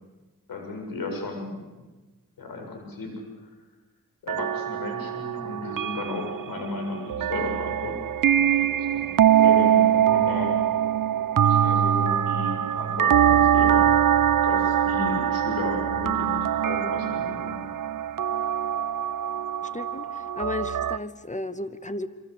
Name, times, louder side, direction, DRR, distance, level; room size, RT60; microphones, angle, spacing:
voice 1, 0.5-1.8 2.4-3.1 4.2-7.9 8.3-10.5 11.4-13.9 14.4-16.4 16.6-17.6, left 3 dB, 85° left, 3 dB, 7.9 m, -34 dB
sound 1, 4.3-21.0, right 10 dB, 65° right, 0.8 m, -23 dB
voice 2, 19.7-22.1, left 2 dB, 20° left, 11 dB, 2.2 m, -34 dB
27.0 x 26.0 x 8.6 m, 1.2 s
cardioid pair, 55°, 34 cm